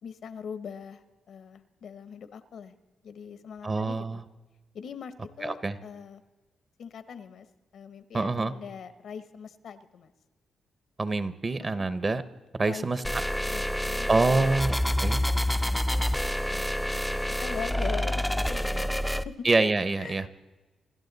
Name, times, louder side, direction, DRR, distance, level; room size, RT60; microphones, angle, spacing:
voice 1, 0.0-2.8 3.0-4.2 4.7-6.2 6.8-7.5 7.7-10.1 11.6-11.9 12.6-12.9 13.4-16.1 16.5-16.7 17.1-19.5 20.0-20.3, left 7 dB, 70° left, 12 dB, 1.0 m, -42 dB
voice 2, 3.6-4.2 5.4-5.8 8.1-8.5 11.0-12.2 12.6-13.0 14.1-15.2 19.4-20.3, right 3 dB, 30° right, 13 dB, 0.9 m, -26 dB
sound 1, 13.0-19.2, left 1 dB, 5° left, 0.5 m, -28 dB
27.5 x 12.0 x 4.1 m, 1.2 s
cardioid pair, 100°, 0 cm